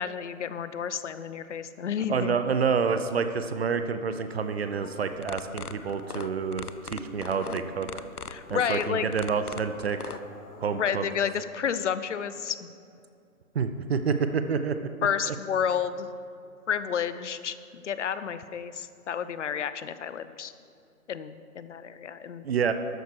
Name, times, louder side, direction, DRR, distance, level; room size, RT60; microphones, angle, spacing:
voice 1, 0.0-2.4 8.3-9.1 10.7-12.7 15.0-16.1 16.7-20.5 21.1-22.4, left 8 dB, 55° left, 13 dB, 0.7 m, -31 dB
voice 2, 2.1-7.9 8.5-10.2 10.6-11.0 13.5-14.8 15.3-15.4 22.4-22.7, right 6 dB, 45° right, 9 dB, 0.7 m, -28 dB
sound 1, 4.3-11.1, left 2 dB, 10° left, 0.7 m, -50 dB
sound 2, 5.1-10.2, left 6 dB, 90° left, 0.7 m, -38 dB
13.0 x 9.3 x 4.7 m, 2.6 s
figure-of-eight pair, 135°, 44 cm